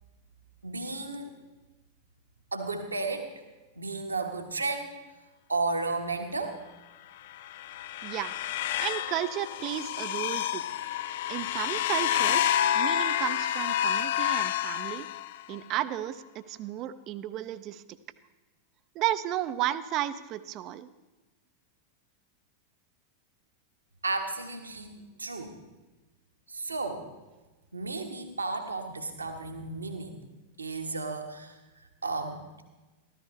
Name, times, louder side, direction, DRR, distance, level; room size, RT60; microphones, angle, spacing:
voice 1, 0.6-1.3 2.5-3.3 3.7-5.0 5.5-6.6 24.0-24.9 25.2-25.5 26.5-27.1 27.7-30.2 30.6-32.6, right 3 dB, 80° right, 4 dB, 1.3 m, -33 dB
sound 1, 7.3-15.6, left 11 dB, 55° left, 0.3 m, -29 dB
voice 2, 8.0-8.3 8.8-10.6 11.3-15.1 15.5-17.8 18.9-20.9, right 13 dB, 40° right, 13 dB, 0.6 m, -33 dB
14.0 x 13.5 x 3.2 m, 1.2 s
figure-of-eight pair, 90°, 0 cm